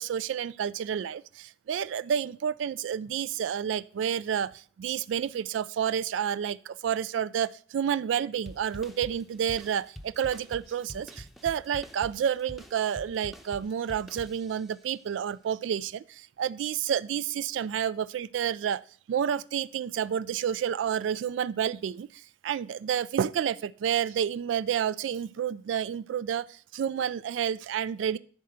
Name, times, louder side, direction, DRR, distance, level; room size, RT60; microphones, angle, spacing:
voice 1, 0.0-18.8 19.1-28.2, right 8 dB, 80° right, 17 dB, 0.3 m, -30 dB
sound 1, 8.5-14.8, equal, ahead, 0.6 m, -46 dB
10.5 x 4.4 x 6.4 m, 0.44 s
head